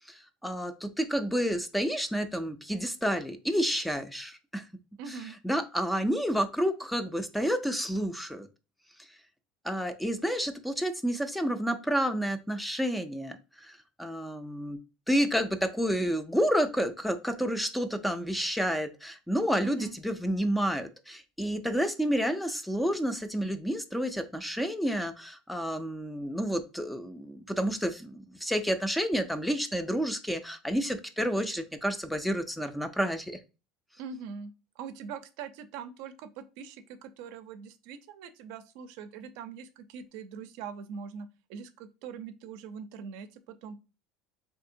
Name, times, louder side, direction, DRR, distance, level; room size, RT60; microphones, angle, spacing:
voice 1, 0.1-4.7 5.4-8.5 9.6-14.8 15.1-33.4, equal, ahead, 9 dB, 0.3 m, -30 dB
voice 2, 5.0-5.3 19.6-20.0 34.0-43.8, right 6 dB, 70° right, 11 dB, 0.4 m, -42 dB
3.6 x 2.7 x 2.5 m, 0.30 s
cardioid pair, 140°, 0 cm